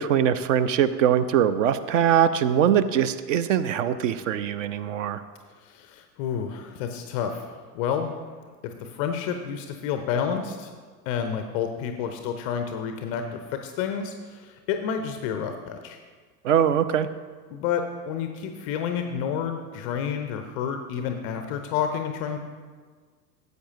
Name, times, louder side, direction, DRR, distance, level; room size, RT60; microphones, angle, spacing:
voice 1, 0.0-5.2 16.4-17.1, right 9 dB, 50° right, 14 dB, 0.6 m, -22 dB
voice 2, 5.6-8.1 8.6-10.7 11.1-16.0 17.5-22.4, left 7 dB, 25° left, 6 dB, 0.4 m, -30 dB
14.5 x 7.9 x 2.7 m, 1.5 s
figure-of-eight pair, 85°, 49 cm